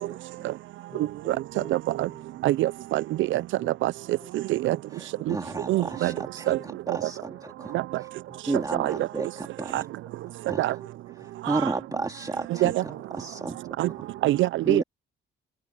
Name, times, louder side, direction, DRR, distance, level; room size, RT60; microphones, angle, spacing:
voice 1, 0.1-0.5 4.9-8.1 8.5-9.9 10.5-10.8 11.2-13.6 14.6-14.8, right 3 dB, 20° right, 2.4 m, -33 dB
voice 2, 0.9-2.6 3.3-3.7 4.2-4.5 5.1-5.3 5.8-6.2 6.5-6.7 7.3-7.5 8.3-8.5 9.0-9.1 9.6-9.8 10.8-10.9 11.2-11.3 11.8-11.9 12.8-13.3, left 1 dB, 5° left, 7.5 m, -50 dB
voice 3, 1.7-2.1 2.4-3.0 3.3-3.4 3.8-3.9 4.3-4.8 5.3-5.4 5.7-6.1 6.5-6.6 6.9-7.0 7.7-7.8 8.8-8.9 9.7-9.8 10.6-10.7 11.5-11.6 12.6-12.7 13.8-13.9 14.2-14.8, right 16 dB, 75° right, 0.4 m, -24 dB
cardioid pair, 90°, 20 cm